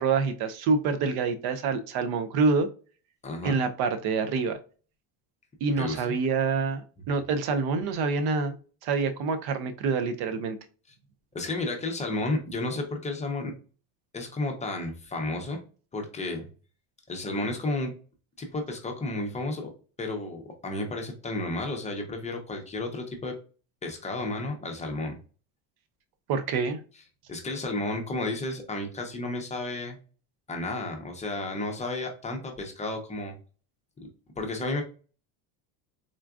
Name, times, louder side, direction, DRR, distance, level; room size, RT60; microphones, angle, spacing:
voice 1, 0.0-2.7 3.4-4.6 5.6-8.6 8.8-10.6 26.3-26.8, right 4 dB, 55° right, 9 dB, 0.6 m, -26 dB
voice 2, 3.2-3.6 5.8-6.0 11.3-13.5 14.1-15.6 15.9-16.5 17.1-17.9 18.4-19.7 20.0-23.3 23.8-25.1 27.3-30.0 30.5-33.3 34.4-34.8, left 2 dB, 15° left, 2 dB, 0.6 m, -32 dB
3.8 x 2.2 x 2.3 m, 0.37 s
cardioid pair, 130°, 45 cm